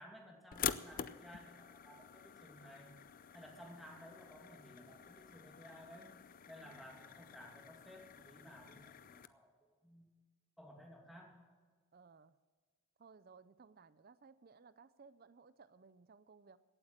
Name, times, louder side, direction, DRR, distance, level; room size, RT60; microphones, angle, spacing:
voice 1, 0.0-2.9 3.3-6.2 6.5-9.5 9.8-10.1 10.6-11.4, equal, ahead, -1 dB, 2.4 m, -56 dB
sound 1, 0.5-9.3, left 8 dB, 40° left, 0.4 m, -47 dB
voice 2, 11.9-12.4 13.0-16.6, right 5 dB, 40° right, 15 dB, 0.5 m, -61 dB
17.0 x 8.2 x 7.6 m, 1.4 s
head